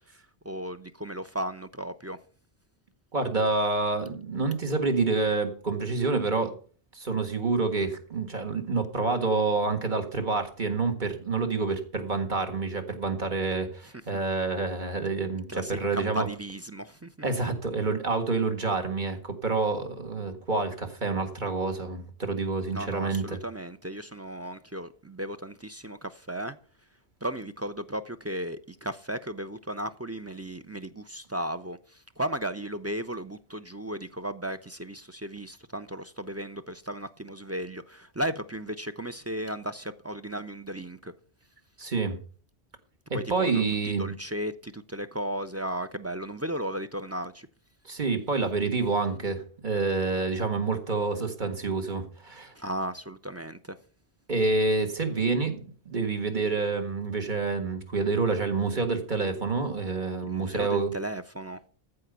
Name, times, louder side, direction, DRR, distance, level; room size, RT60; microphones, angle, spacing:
voice 1, 0.4-2.2 13.8-14.2 15.5-17.1 22.7-26.6 27.2-41.1 43.1-47.5 52.5-53.8 60.3-61.6, right 1 dB, 20° right, 0.5 m, -35 dB
voice 2, 3.1-6.6 6.9-16.3 17.2-23.4 41.8-42.2 43.1-44.1 47.9-52.5 54.3-60.9, right 3 dB, 50° right, 1.9 m, -28 dB
14.5 x 5.1 x 8.0 m
omnidirectional pair, 1.1 m